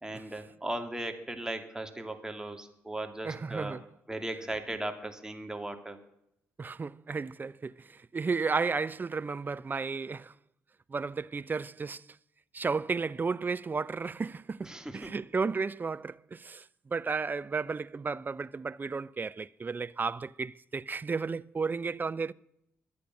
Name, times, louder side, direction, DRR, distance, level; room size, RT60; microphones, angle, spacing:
voice 1, 0.0-3.8 4.1-6.0 14.6-15.2, right 1 dB, 10° right, 2.7 m, -37 dB
voice 2, 3.2-3.8 6.6-10.3 10.9-12.0 12.5-22.3, right 4 dB, 30° right, 0.5 m, -33 dB
23.5 x 8.6 x 6.4 m
figure-of-eight pair, 40°, 7 cm